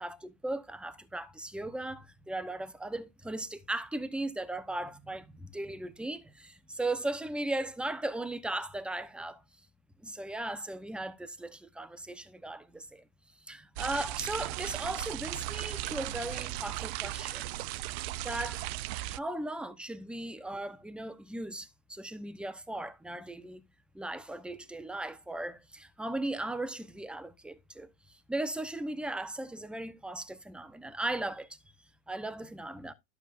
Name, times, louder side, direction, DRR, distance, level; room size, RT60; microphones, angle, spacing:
voice 1, 0.0-9.4 10.0-13.0 13.4-17.5 17.8-18.6 19.0-23.6 23.9-31.6 32.1-32.9, right 2 dB, 5° right, 0.8 m, -37 dB
sound 1, 13.8-19.2, right 15 dB, 60° right, 0.5 m, -36 dB
12.0 x 7.1 x 2.5 m
hypercardioid pair, 110°, 37 cm